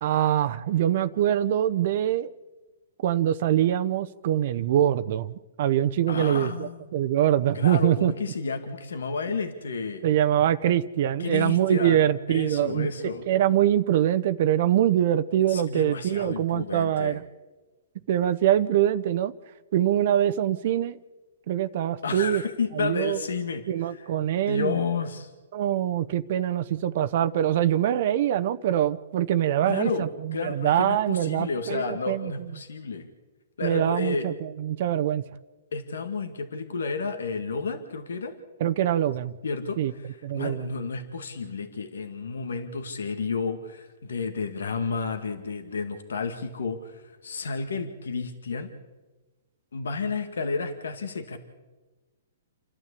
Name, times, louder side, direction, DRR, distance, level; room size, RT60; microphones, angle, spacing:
voice 1, 0.0-2.3 3.0-8.1 10.0-12.9 13.3-17.2 18.1-19.3 19.7-21.0 21.5-22.4 22.7-23.2 23.7-24.7 25.5-32.3 33.6-35.2 38.6-39.3 39.8-39.9 40.2-40.7, right 11 dB, 55° right, 11 dB, 0.8 m, -24 dB
voice 2, 6.1-6.9 7.5-10.0 11.2-13.3 15.5-17.2 22.0-24.1 24.5-25.3 29.6-33.1 33.6-34.3 35.7-38.4 39.4-48.7 49.7-51.4, left 4 dB, 85° left, 7 dB, 2.0 m, -31 dB
28.5 x 12.5 x 8.4 m, 1.2 s
hypercardioid pair, 145°, 0 cm